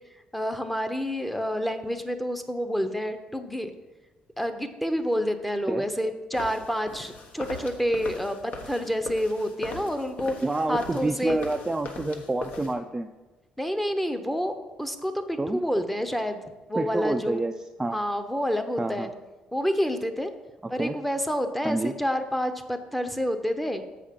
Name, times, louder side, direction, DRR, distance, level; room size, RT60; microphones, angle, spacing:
voice 1, 0.3-3.7 4.4-10.3 10.7-11.4 13.6-14.5 14.8-16.4 16.7-17.4 17.9-19.1 19.5-20.3 20.7-23.8, equal, 5° left, 8 dB, 0.8 m, -28 dB
sound 1, 6.3-12.7, left 3 dB, 60° left, 1.1 m, -39 dB
voice 2, 10.4-13.1 15.4-15.6 16.7-17.5 17.8-18.0 18.8-19.1 20.8-21.0 21.6-21.9, right 2 dB, 15° right, 5 dB, 0.4 m, -28 dB
7.5 x 5.0 x 5.8 m, 1.1 s
cardioid pair, 85°, 3 cm